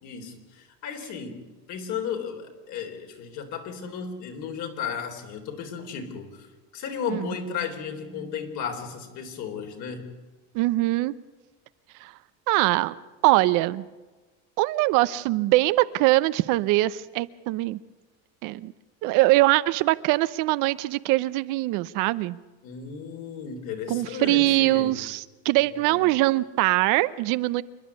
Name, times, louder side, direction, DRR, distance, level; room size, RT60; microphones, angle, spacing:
voice 1, 0.0-6.5 6.7-10.1 22.6-25.0 25.9-26.0, left 7 dB, 60° left, 3.8 m, -34 dB
voice 2, 10.5-11.1 12.0-12.1 12.5-12.9 13.2-13.9 14.6-17.8 18.4-18.7 19.0-22.4 23.9-27.6, right 19 dB, 65° right, 0.8 m, -22 dB
27.5 x 11.0 x 9.6 m
cardioid pair, 140°, 34 cm